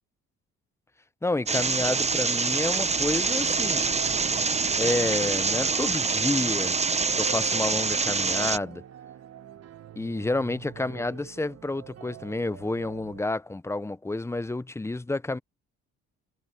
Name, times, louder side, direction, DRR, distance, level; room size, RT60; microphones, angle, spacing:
voice 1, 1.2-3.9 4.7-6.8 7.1-8.8 10.0-15.4, left 2 dB, 10° left, 0.6 m, -29 dB
sound 1, 1.5-8.6, right 4 dB, 20° right, 0.8 m, -25 dB
sound 2, 3.4-13.2, right 10 dB, 55° right, 1.4 m, -45 dB
cardioid pair, 90°, 30 cm